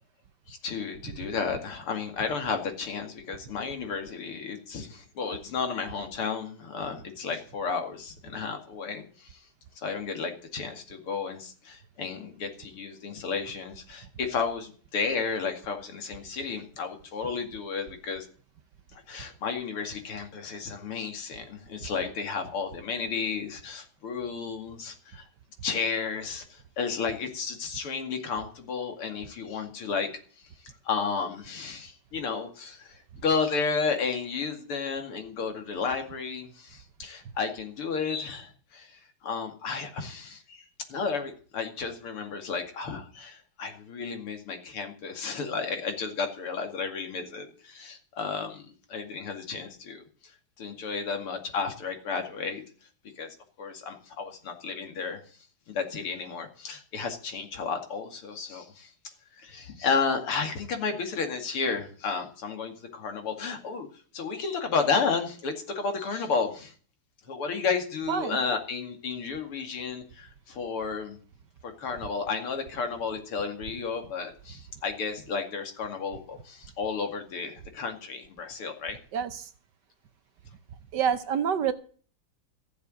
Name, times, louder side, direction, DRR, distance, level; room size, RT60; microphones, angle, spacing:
voice 1, 0.5-9.4 9.8-18.3 18.9-25.2 25.6-30.1 30.8-40.6 40.9-50.0 50.6-52.6 53.2-55.2 55.7-58.9 59.4-63.9 64.1-66.7 67.3-71.2 71.6-79.0, left 5 dB, 90° left, 3.3 m, -32 dB
voice 2, 79.1-79.5 80.9-81.7, right 8 dB, 60° right, 1.3 m, -27 dB
15.0 x 7.3 x 7.8 m
omnidirectional pair, 2.4 m